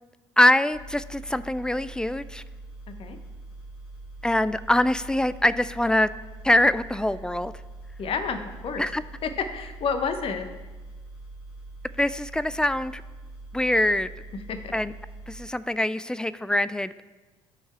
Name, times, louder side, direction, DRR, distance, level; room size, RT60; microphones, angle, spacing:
voice 1, 0.4-2.4 4.2-6.1 6.4-7.5 8.8-9.0 12.0-13.0 13.5-14.1 14.7-14.9 15.3-17.0, left 1 dB, 5° left, 15 dB, 0.3 m, -23 dB
sound 1, 0.7-15.4, right 2 dB, 85° left, 2.6 m, -43 dB
voice 2, 8.0-8.8 9.2-10.5 14.5-14.7, left 5 dB, 45° left, 8 dB, 0.8 m, -29 dB
12.5 x 4.6 x 4.5 m, 1.2 s
figure-of-eight pair, 55°, 13 cm